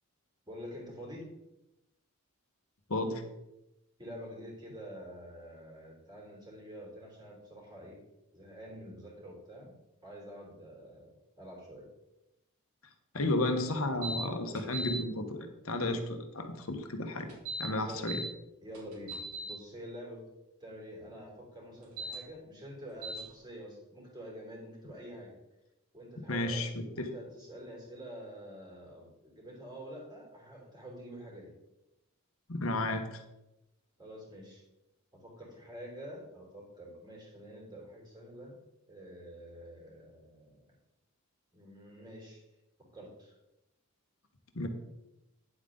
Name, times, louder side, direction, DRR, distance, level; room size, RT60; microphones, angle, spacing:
voice 1, 0.5-1.3 4.0-8.0 8.3-9.7 10.0-11.9 17.9-18.1 18.6-20.2 20.6-25.3 25.9-31.5 34.0-34.6 35.1-38.5 38.9-40.7 41.5-42.4 42.9-43.3, equal, 20° right, -3 dB, 3.2 m, -47 dB
voice 2, 2.9-3.2 13.1-17.3 17.6-18.2 26.3-27.1 32.5-33.2 44.5-44.7, left 2 dB, 75° left, 6 dB, 1.2 m, -33 dB
sound 1, 14.0-14.2 14.6-15.0 17.3-18.3 18.7-19.5 21.8-22.2 23.0-23.2, right 1 dB, 90° right, 3.4 m, -38 dB
10.0 x 7.7 x 3.9 m, 0.92 s
head